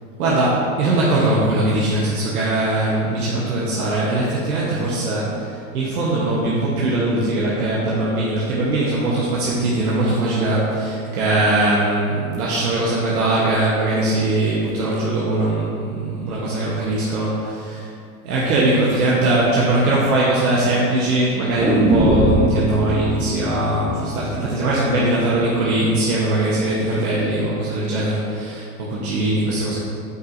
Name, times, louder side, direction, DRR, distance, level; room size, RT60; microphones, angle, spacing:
voice 1, 0.2-17.9 18.2-29.8, right 2 dB, 85° right, -6 dB, 1.2 m, -21 dB
sound 1, 21.6-25.6 25.9-26.0, right 1 dB, 5° right, 0.4 m, -22 dB
8.1 x 5.3 x 2.6 m, 2.5 s
hypercardioid pair, 130°, 43 cm